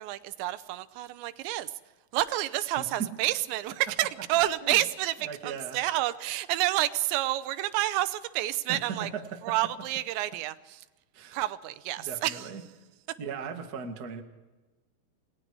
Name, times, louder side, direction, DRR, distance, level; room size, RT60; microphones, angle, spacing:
voice 1, 0.0-1.7 2.1-9.1 9.4-10.8 11.3-12.5, right 15 dB, 90° right, 14 dB, 3.2 m, -29 dB
voice 2, 2.8-3.1 4.6-4.8 5.2-5.8 8.7-9.6 11.1-11.4 12.0-12.6 13.2-14.2, right 6 dB, 55° right, 4 dB, 1.0 m, -38 dB
28.5 x 20.0 x 4.8 m, 1.1 s
omnidirectional pair, 5.0 m